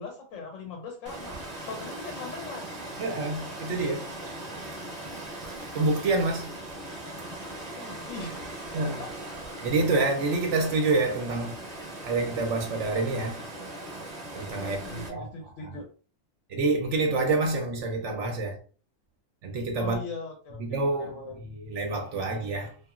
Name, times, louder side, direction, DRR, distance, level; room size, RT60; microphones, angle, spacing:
voice 1, 0.0-1.4 1.7-2.8 7.8-8.5 8.7-9.1 14.5-15.9 19.8-21.4, left 3 dB, 75° left, 0.9 m, -40 dB
Water, 1.1-15.1, right 1 dB, 35° right, 0.8 m, -39 dB
voice 2, 3.0-4.1 5.7-6.5 8.7-9.0 9.6-11.6 12.0-13.4 14.3-15.8 16.5-18.6 19.4-20.0 20.6-21.1 21.4-22.8, right 3 dB, 70° right, 0.9 m, -27 dB
2.8 x 2.4 x 2.4 m
omnidirectional pair, 1.3 m